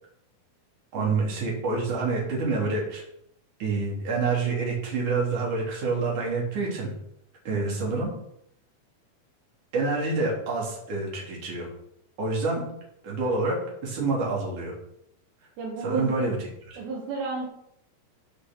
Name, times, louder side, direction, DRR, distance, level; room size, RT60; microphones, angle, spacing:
voice 1, 0.9-3.0 3.6-6.9 7.4-8.1 9.7-11.7 12.2-12.6 13.0-13.6 13.8-14.7 15.8-16.4 16.7-16.8, right 3 dB, 55° right, -3 dB, 4.7 m, -27 dB
voice 2, 7.5-7.8 15.6-16.2 16.8-17.5, right 4 dB, 80° right, -3 dB, 3.6 m, -33 dB
13.5 x 5.5 x 6.1 m, 0.75 s
omnidirectional pair, 4.3 m